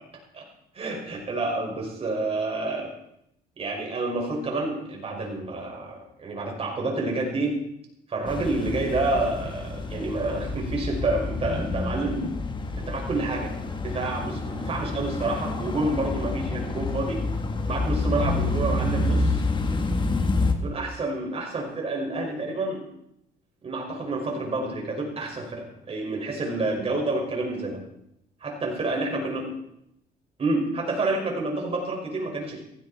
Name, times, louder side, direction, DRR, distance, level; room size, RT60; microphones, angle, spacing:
voice 1, 0.7-2.9 3.6-7.6 8.1-12.3 12.8-13.5 13.8-17.2 17.7-19.5 20.6-22.8 23.6-27.8 28.4-29.5 30.4-32.6, right 2 dB, 35° right, 0 dB, 5.7 m, -29 dB
sound 1, 8.3-20.5, left 2 dB, 30° left, 1.7 m, -28 dB
16.0 x 15.5 x 4.4 m, 0.80 s
cardioid pair, 110°, 17 cm